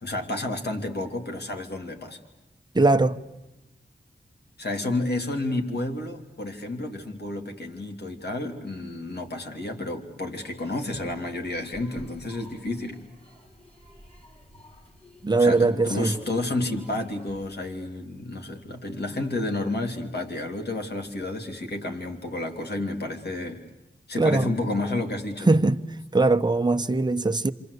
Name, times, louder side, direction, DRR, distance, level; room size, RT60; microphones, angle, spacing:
voice 1, 0.0-2.2 4.6-13.0 15.4-23.6 24.1-25.5, left 2 dB, 75° left, 3.0 m, -31 dB
voice 2, 2.7-3.2 15.2-16.2 24.2-24.5 25.5-25.8 26.1-27.5, right 3 dB, 25° right, 1.0 m, -21 dB
sound 1, 10.4-17.6, equal, 35° left, 5.9 m, -52 dB
27.5 x 27.0 x 8.2 m
wide cardioid pair, 100°, 17 cm